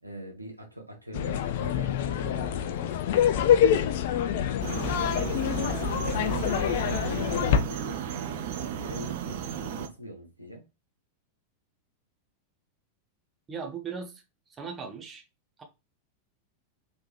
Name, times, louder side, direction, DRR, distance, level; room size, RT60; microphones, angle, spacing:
voice 1, 0.0-3.7 6.0-10.6, equal, 85° right, 1.0 m, -42 dB
sound 1, 1.1-7.6, left 9 dB, 55° left, 0.4 m, -26 dB
sound 2, 4.6-9.9, right 9 dB, 50° right, 0.5 m, -34 dB
voice 2, 13.5-14.2 14.6-15.2 15.6-15.7, right 5 dB, 20° right, 0.9 m, -37 dB
3.4 x 3.3 x 2.9 m
figure-of-eight pair, 90°, 0 cm